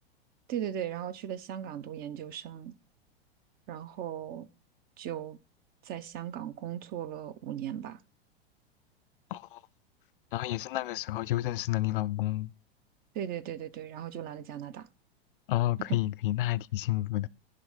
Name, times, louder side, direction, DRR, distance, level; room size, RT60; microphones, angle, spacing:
voice 1, 0.5-2.7 3.7-4.5 5.0-5.4 5.8-8.0 13.1-14.9 15.9-16.0, right 10 dB, 30° right, 0.7 m, -37 dB
voice 2, 10.3-12.5 15.5-17.3, left 15 dB, 55° left, 0.5 m, -30 dB
10.5 x 3.7 x 7.3 m
figure-of-eight pair, 90°, 31 cm